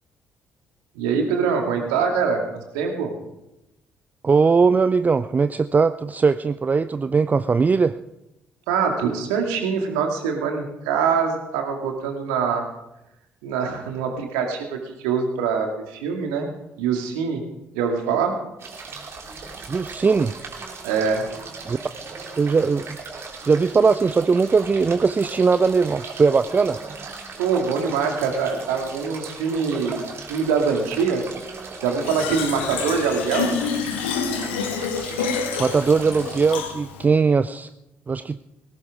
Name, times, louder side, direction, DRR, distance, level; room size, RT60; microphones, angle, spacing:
voice 1, 1.0-2.4 2.7-3.1 8.7-12.6 13.4-14.8 15.0-16.5 16.8-17.4 17.7-18.4 20.8-21.2 27.4-30.0 30.3-31.2 31.8-33.5, right 6 dB, 70° right, 3 dB, 2.3 m, -23 dB
voice 2, 4.2-7.9 19.7-20.3 21.7-21.8 22.4-22.9 23.5-26.8 35.6-37.7 38.1-38.4, right 5 dB, 25° right, 13 dB, 0.5 m, -19 dB
sound 1, 18.6-36.6, right 4 dB, 45° right, 2.9 m, -37 dB
Fill (with liquid), 32.0-37.0, left 6 dB, 75° left, 1.3 m, -28 dB
19.5 x 16.5 x 3.6 m, 0.90 s
figure-of-eight pair, 45°, 6 cm